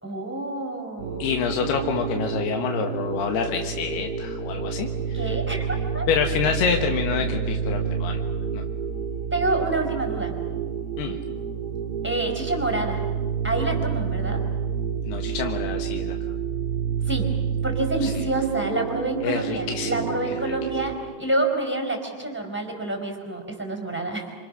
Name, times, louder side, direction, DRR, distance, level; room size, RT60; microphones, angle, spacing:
voice 1, 0.0-1.2 5.1-6.1 9.3-10.3 12.0-13.0 13.4-14.4 17.0-17.3 17.6-24.3, right 2 dB, ahead, 3 dB, 3.7 m, -28 dB
sound 1, 1.0-20.9, right 7 dB, 20° right, 3.8 m, -29 dB
voice 2, 1.2-5.4 6.1-8.2 8.5-8.6 11.0-11.2 15.1-16.2 18.0-18.2 19.2-20.5, left 7 dB, 65° left, 3 dB, 2.8 m, -27 dB
29.5 x 27.0 x 6.5 m, 1.5 s
omnidirectional pair, 5.9 m